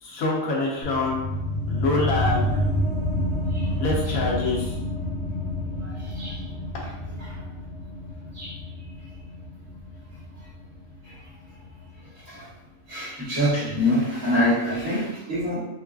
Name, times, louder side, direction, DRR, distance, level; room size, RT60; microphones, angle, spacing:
voice 1, 0.0-1.2 1.7-2.5 3.8-4.7, left 2 dB, 85° left, -3 dB, 1.3 m, -25 dB
sound 1, 0.8-11.9, left 1 dB, 20° left, 0.8 m, -29 dB
voice 2, 12.9-15.6, left 1 dB, 75° right, -10 dB, 2.0 m, -25 dB
4.7 x 2.4 x 2.3 m, 0.89 s
omnidirectional pair, 1.4 m